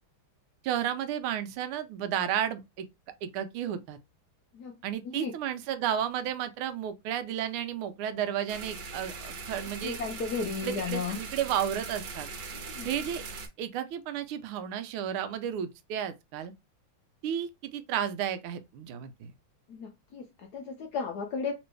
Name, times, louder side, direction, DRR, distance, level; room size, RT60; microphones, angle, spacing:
voice 1, 0.6-2.9 3.2-4.0 4.8-10.0 10.6-12.3 12.8-13.2 13.6-16.5 17.2-19.3, right 9 dB, 90° right, 1.5 m, -32 dB
voice 2, 5.0-5.4 9.8-11.2 12.5-12.9 19.7-21.5, left 5 dB, 75° left, 0.9 m, -34 dB
sound 1, 8.5-13.5, right 4 dB, 65° right, 1.4 m, -40 dB
3.4 x 3.0 x 3.2 m
omnidirectional pair, 2.3 m